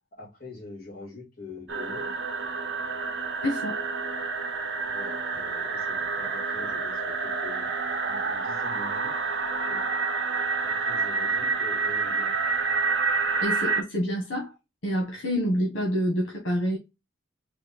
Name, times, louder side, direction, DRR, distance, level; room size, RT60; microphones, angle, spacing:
voice 1, 0.1-2.1 4.8-7.7 8.1-9.1 9.7-9.9 10.6-12.4, left 2 dB, 50° left, 2.7 m, -44 dB
sound 1, 1.7-13.8, right 4 dB, 65° right, 1.0 m, -28 dB
voice 2, 3.4-3.8 13.4-14.5 14.8-16.8, equal, 80° left, 1.4 m, -27 dB
4.4 x 2.7 x 4.2 m
head